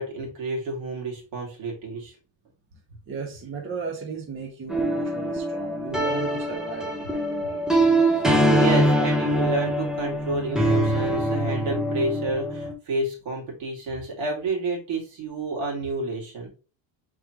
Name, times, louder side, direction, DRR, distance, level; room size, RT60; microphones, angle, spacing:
voice 1, 0.0-2.1 8.1-16.5, right 2 dB, 70° right, -1 dB, 2.2 m, -30 dB
voice 2, 3.1-7.7, right 5 dB, 25° right, 0 dB, 0.8 m, -36 dB
sound 1, 4.7-12.7, right 1 dB, ahead, 0.5 m, -23 dB
5.0 x 3.7 x 2.9 m, 0.35 s
cardioid pair, 160°, 47 cm